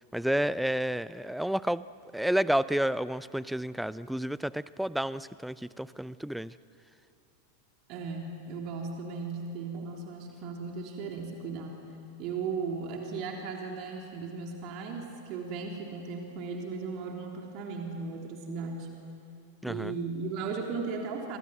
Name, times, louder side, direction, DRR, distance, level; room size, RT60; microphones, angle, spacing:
voice 1, 0.1-1.8 2.1-6.5 19.6-19.9, right 1 dB, ahead, 18 dB, 0.6 m, -30 dB
voice 2, 7.9-11.8 12.2-19.0 19.6-21.4, right 4 dB, 40° right, 1 dB, 3.5 m, -36 dB
30.0 x 24.5 x 7.9 m, 2.6 s
figure-of-eight pair, 90°, 0 cm